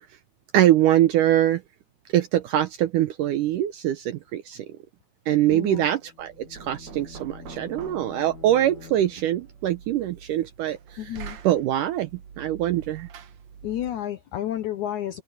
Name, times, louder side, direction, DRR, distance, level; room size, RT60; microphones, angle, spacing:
voice 1, 0.5-1.6 2.1-4.7 5.3-11.2 11.4-12.1 12.4-13.1, right 12 dB, 75° right, 1.9 m, -23 dB
voice 2, 5.5-5.9 11.0-11.4 13.6-15.2, left 11 dB, 75° left, 1.8 m, -31 dB
sound 1, 5.8-9.7, left 6 dB, 45° left, 1.4 m, -46 dB
Knock, 6.2-14.1, right 7 dB, 55° right, 2.2 m, -45 dB
omnidirectional pair, 4.5 m